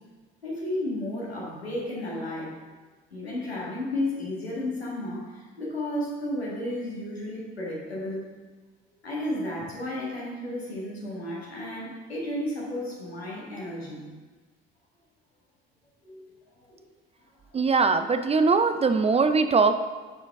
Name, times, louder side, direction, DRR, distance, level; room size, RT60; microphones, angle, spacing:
voice 1, 0.4-2.5 3.1-8.3 9.0-14.0 16.0-16.2 16.7-16.8 17.5-17.6, left 1 dB, 85° left, -5 dB, 1.7 m, -33 dB
voice 2, 17.5-19.7, right 4 dB, 20° right, 9 dB, 0.4 m, -21 dB
9.5 x 5.1 x 3.5 m, 1.4 s
figure-of-eight pair, 50°, 30 cm